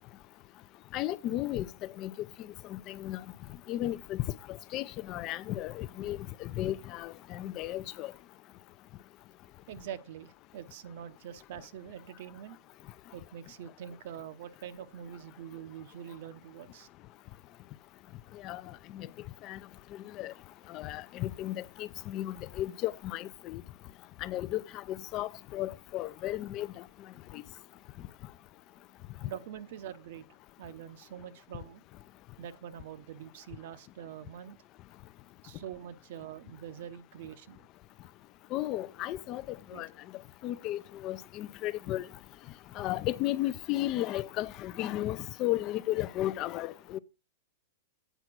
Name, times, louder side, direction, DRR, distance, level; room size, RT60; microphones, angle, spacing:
voice 1, 0.9-1.7 2.0-2.3 2.7-3.2 3.7-4.2 4.5-8.1 18.4-18.6 18.9-19.1 19.4-19.6 20.2-20.3 20.7-23.6 24.2-26.7 27.3-27.4 38.5-39.9 40.4-42.1 42.8-47.0, left 14 dB, 35° left, 0.4 m, -34 dB
voice 2, 9.7-12.6 13.1-16.9 29.2-30.3 30.6-31.8 32.4-34.6 35.4-37.7 39.7-39.8, right 9 dB, 55° right, 0.8 m, -44 dB
8.0 x 5.8 x 6.0 m
supercardioid pair, 155°, 0 cm